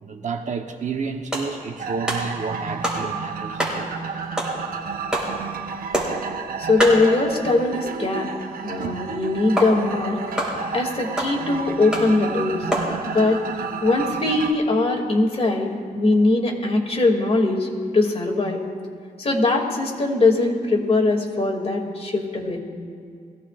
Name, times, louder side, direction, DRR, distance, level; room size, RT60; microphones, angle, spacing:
voice 1, 0.0-4.0 8.8-8.9, right 5 dB, 55° right, 1.1 m, -31 dB
sound 1, 1.1-8.1 8.4-8.5 8.8-8.9 9.6-13.0, equal, 5° right, 4.4 m, -29 dB
sound 2, 1.8-14.5, right 6 dB, 75° right, 0.9 m, -31 dB
voice 2, 6.6-8.3 8.6-10.2 10.7-12.6 13.1-13.4 13.8-17.7 17.9-18.6 19.2-22.6, left 2 dB, 40° left, 2.5 m, -21 dB
22.5 x 16.0 x 2.5 m
cardioid pair, 85°, 15 cm